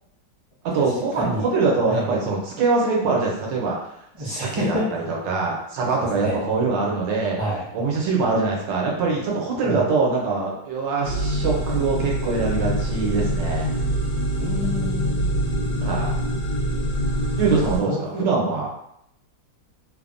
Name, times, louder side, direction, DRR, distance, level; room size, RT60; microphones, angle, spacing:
voice 1, 0.7-3.9 4.2-7.4 7.7-13.7 15.8-16.2 17.4-18.7, right 4 dB, 85° right, -2 dB, 1.4 m, -23 dB
voice 2, 4.1-5.0 6.0-6.4 7.4-7.6 9.6-9.9 14.4-15.6 17.8-18.3, equal, 30° right, -9 dB, 0.5 m, -29 dB
sound 1, 11.0-17.8, equal, 65° left, 1.2 m, -24 dB
3.3 x 2.0 x 2.5 m, 0.75 s
omnidirectional pair, 1.9 m